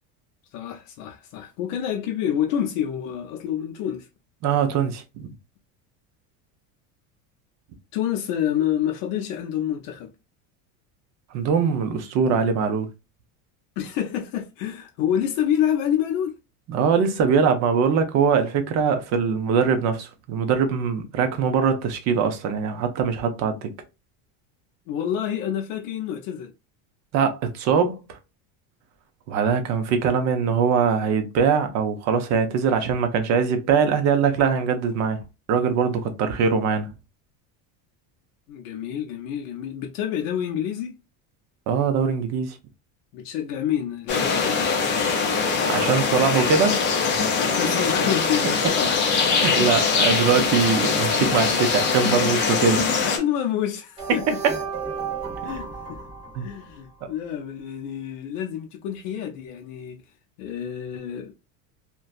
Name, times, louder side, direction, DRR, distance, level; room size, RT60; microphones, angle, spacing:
voice 1, 0.5-4.1 7.9-10.1 13.8-16.4 24.9-26.5 38.5-41.0 43.1-44.6 47.4-49.0 53.0-54.4 55.4-56.0 56.4-60.0 60.4-61.3, left 10 dB, 75° left, 0.6 m, -28 dB
voice 2, 4.4-5.3 11.3-12.9 16.7-23.7 27.1-28.2 29.3-35.2 35.5-36.9 41.7-42.6 45.7-46.8 47.1-47.2 49.4-52.9 56.3-56.5, right 6 dB, 45° right, 0.6 m, -22 dB
sound 1, 44.1-53.2, left 5 dB, 30° left, 0.4 m, -22 dB
sound 2, 54.0-57.0, right 5 dB, 10° right, 1.2 m, -33 dB
2.6 x 2.2 x 2.3 m
cardioid pair, 155°, 40 cm